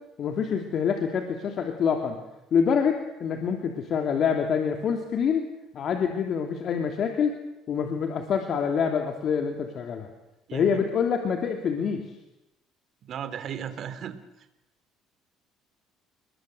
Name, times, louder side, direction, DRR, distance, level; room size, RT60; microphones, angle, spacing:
voice 1, 0.2-2.2 2.5-5.4 5.7-7.3 7.7-10.1 10.5-12.0, left 6 dB, 50° left, 4 dB, 3.0 m, -26 dB
voice 2, 10.5-10.8 13.1-14.5, right 8 dB, 50° right, 10 dB, 3.0 m, -36 dB
30.0 x 21.5 x 7.9 m, 0.91 s
cardioid pair, 120°, 0 cm